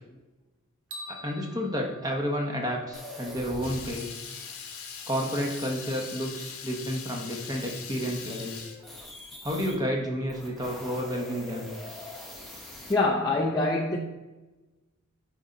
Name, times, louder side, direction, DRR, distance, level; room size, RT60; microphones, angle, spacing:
sound 1, 0.9-3.2, left 1 dB, 60° right, 1.2 m, -45 dB
voice 1, 1.1-4.2 5.1-8.7 9.4-11.7, equal, 15° right, 1.1 m, -31 dB
sound 2, 2.9-9.8 10.2-12.9, left 1 dB, ahead, 1.3 m, -44 dB
Water tap faucet / Liquid, 3.6-8.8, left 7 dB, 75° left, 1.0 m, -41 dB
voice 2, 12.9-14.0, left 2 dB, 15° left, 0.6 m, -24 dB
9.8 x 3.8 x 4.0 m
head